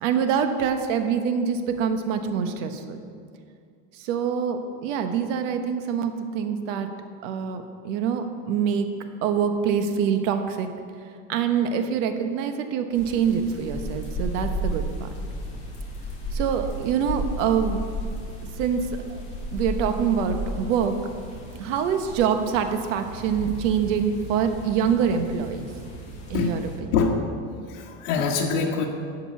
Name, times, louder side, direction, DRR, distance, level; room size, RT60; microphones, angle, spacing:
voice 1, 0.0-3.0 3.9-6.9 7.2-8.9 9.2-10.7 11.3-15.1 16.3-17.8 18.6-19.2 19.5-21.0 21.6-25.7 26.3-26.9, right 7 dB, 80° right, 7 dB, 1.2 m, -25 dB
sound 1, 12.9-26.8, equal, 20° left, 2.4 m, -34 dB
voice 2, 27.7-28.9, left 5 dB, 75° left, -1 dB, 1.4 m, -24 dB
12.0 x 5.3 x 8.4 m, 2.2 s
cardioid pair, 165°, 38 cm